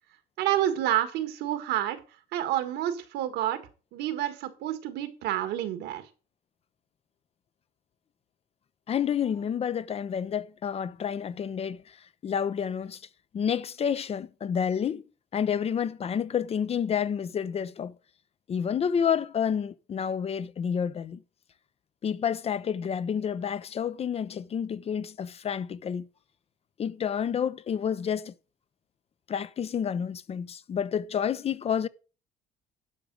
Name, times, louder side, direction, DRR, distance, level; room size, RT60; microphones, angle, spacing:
voice 1, 0.4-2.0 2.3-3.6 3.9-6.1, right 12 dB, 85° right, 1.7 m, -29 dB
voice 2, 8.9-12.0 12.2-13.0 13.3-15.0 15.3-17.9 18.5-21.2 22.0-26.1 26.8-28.3 29.3-31.9, left 8 dB, 35° left, 0.5 m, -29 dB
11.5 x 5.1 x 6.2 m
cardioid pair, 110°, 17 cm